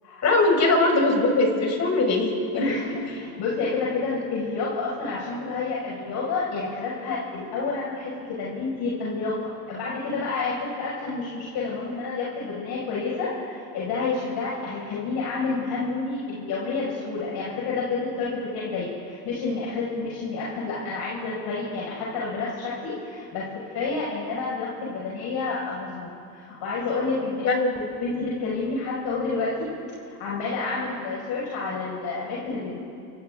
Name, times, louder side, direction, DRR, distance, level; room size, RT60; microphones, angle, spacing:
voice 1, 0.2-2.7 27.4-27.9, left 2 dB, 35° left, 0 dB, 6.8 m, -21 dB
voice 2, 2.5-23.4 23.7-27.5 28.0-29.7 30.2-32.8, left 4 dB, 55° left, -6 dB, 6.7 m, -29 dB
29.0 x 27.0 x 4.0 m, 2.4 s
hypercardioid pair, 95°, 47 cm